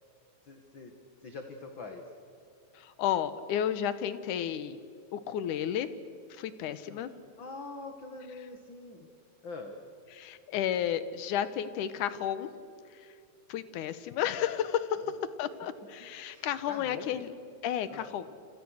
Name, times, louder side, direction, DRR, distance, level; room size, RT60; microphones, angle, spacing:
voice 1, 0.5-0.9 1.2-2.0 6.9-9.1 9.4-9.8 15.0-15.1 16.3-17.2 17.9-18.2, left 3 dB, 45° left, 5 dB, 1.9 m, -44 dB
voice 2, 2.7-4.8 5.1-5.9 6.3-7.1 10.1-12.5 12.9-13.1 13.5-15.0 15.4-17.3 17.6-18.3, left 10 dB, 70° left, 13 dB, 2.3 m, -32 dB
29.0 x 27.0 x 6.4 m, 2.5 s
omnidirectional pair, 4.0 m